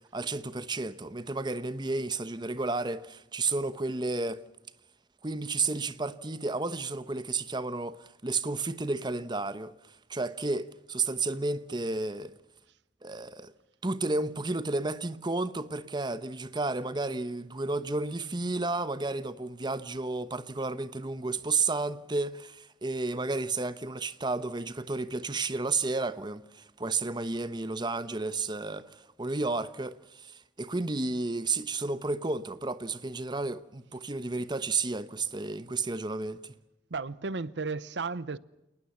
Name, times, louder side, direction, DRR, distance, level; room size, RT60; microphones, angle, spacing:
voice 1, 0.1-4.4 5.2-12.4 13.0-13.5 13.8-36.5, right 3 dB, 25° right, 1.0 m, -32 dB
voice 2, 36.9-38.4, right 4 dB, 80° right, 0.8 m, -34 dB
29.0 x 19.5 x 7.2 m
head